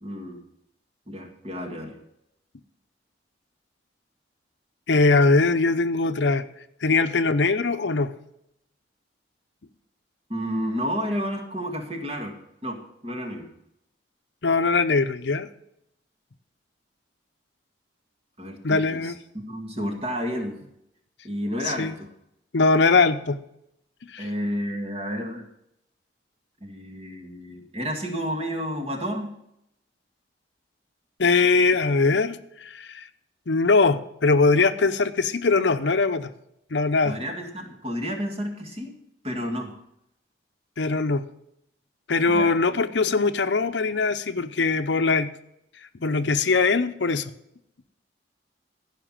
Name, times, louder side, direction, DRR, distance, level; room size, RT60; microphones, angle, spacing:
voice 1, 0.0-0.4 1.1-2.0 10.3-12.4 12.6-13.5 18.4-20.6 21.2-22.1 24.2-25.5 26.6-29.4 37.0-39.0 39.2-39.7 42.3-42.6, equal, 30° right, 2 dB, 2.0 m, -31 dB
voice 2, 4.9-6.4 6.8-8.1 14.4-15.5 18.6-19.2 21.8-21.9 22.5-23.4 24.1-24.2 31.2-33.0 33.5-36.3 36.7-37.2 40.8-41.2 42.1-45.3 46.0-47.3, left 3 dB, 75° left, 11 dB, 0.7 m, -21 dB
15.0 x 5.9 x 7.4 m, 0.79 s
head